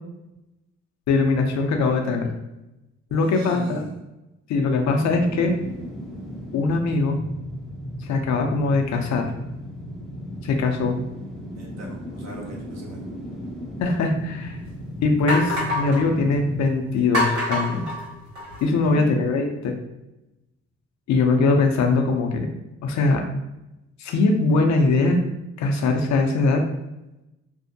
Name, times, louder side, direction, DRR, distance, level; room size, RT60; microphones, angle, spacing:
voice 1, 1.1-2.3 3.1-3.8 4.5-5.5 6.5-7.2 8.0-9.2 10.4-11.0 13.8-14.6 15.0-17.9 18.6-19.8 21.1-22.5 22.8-23.2 24.0-25.2 25.6-26.6, left 3 dB, 65° left, 4 dB, 0.5 m, -21 dB
voice 2, 3.1-4.0 11.5-13.1 18.8-19.3, right 2 dB, 60° right, -1 dB, 0.8 m, -37 dB
sound 1, 4.8-17.9 18.2-18.3, equal, ahead, 0.5 m, -36 dB
sound 2, 13.9-14.0 14.6-14.7 15.3-16.1 17.1-18.6, left 1 dB, 75° right, 1.2 m, -25 dB
2.6 x 2.1 x 2.6 m, 0.95 s
cardioid pair, 90°, 30 cm